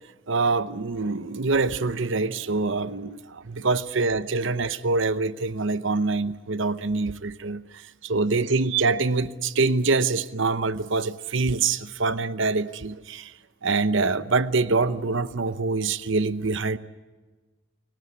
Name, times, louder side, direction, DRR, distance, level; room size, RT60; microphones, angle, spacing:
voice 1, 0.3-13.3 13.6-16.8, right 3 dB, 65° right, 14 dB, 0.9 m, -25 dB
28.5 x 18.0 x 8.2 m, 1.3 s
head